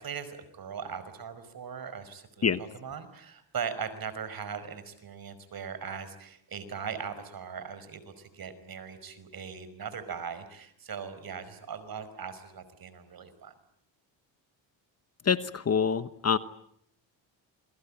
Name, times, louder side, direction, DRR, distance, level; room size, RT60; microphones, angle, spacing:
voice 1, 0.0-13.5, right 6 dB, 50° right, 12 dB, 5.3 m, -39 dB
voice 2, 15.3-16.4, left 6 dB, 35° left, 13 dB, 1.1 m, -26 dB
28.0 x 22.5 x 8.8 m, 0.68 s
cardioid pair, 100°, 46 cm